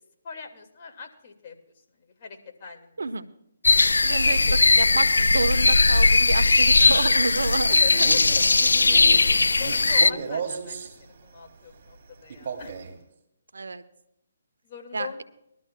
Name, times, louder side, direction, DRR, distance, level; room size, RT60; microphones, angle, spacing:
voice 1, 0.2-1.6 2.2-3.0 4.3-4.6 4.9-5.0 7.7-8.4 8.9-12.0 12.2-12.8 14.6-15.2, left 6 dB, 40° left, 3 dB, 2.0 m, -41 dB
sound 1, 3.6-10.1, left 3 dB, 85° left, 0.3 m, -19 dB
voice 2, 4.0-4.5 4.8-7.8 13.5-13.8 14.9-15.2, right 3 dB, 80° right, 12 dB, 0.8 m, -29 dB
Male speech man speaking, 7.8-10.9 12.3-13.0, right 5 dB, 50° right, 2.4 m, -34 dB
21.0 x 12.5 x 2.2 m, 0.78 s
hypercardioid pair, 150°, 0 cm